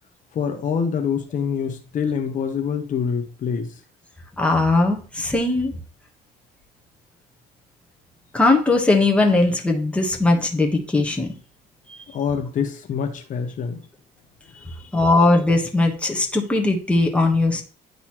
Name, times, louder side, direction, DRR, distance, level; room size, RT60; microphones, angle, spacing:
voice 1, 0.3-3.7 12.1-13.8 14.5-15.0, left 6 dB, 50° left, 4 dB, 1.0 m, -26 dB
voice 2, 4.4-5.7 8.3-11.3 14.9-17.6, left 2 dB, 5° left, 1 dB, 1.2 m, -19 dB
10.0 x 4.0 x 3.0 m, 0.38 s
cardioid pair, 110°, 17 cm